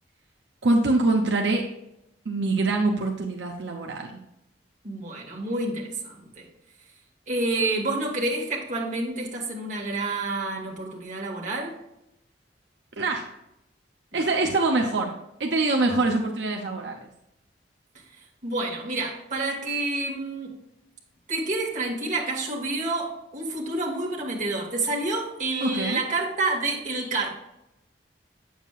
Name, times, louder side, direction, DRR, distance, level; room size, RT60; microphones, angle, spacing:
voice 1, 0.6-1.7 2.3-4.2 13.0-13.3 14.1-17.0 25.6-26.0, right 2 dB, 85° right, 2 dB, 0.8 m, -24 dB
voice 2, 4.8-6.5 7.3-11.7 14.1-14.2 18.4-20.5 21.3-27.3, right 2 dB, 45° right, -2 dB, 1.9 m, -28 dB
8.3 x 7.3 x 2.4 m, 0.87 s
head